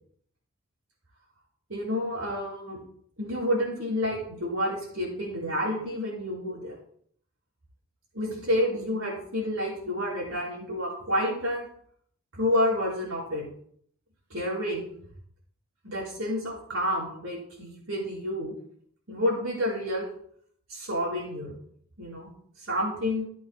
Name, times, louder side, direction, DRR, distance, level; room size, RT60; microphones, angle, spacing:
voice 1, 1.7-2.8 3.2-6.8 8.1-11.7 12.3-13.5 14.3-14.9 15.8-18.6 19.1-20.1 20.7-21.6 22.0-22.3 22.7-23.3, left 1 dB, 90° right, -3 dB, 4.4 m, -29 dB
15.5 x 8.3 x 2.2 m, 0.64 s
head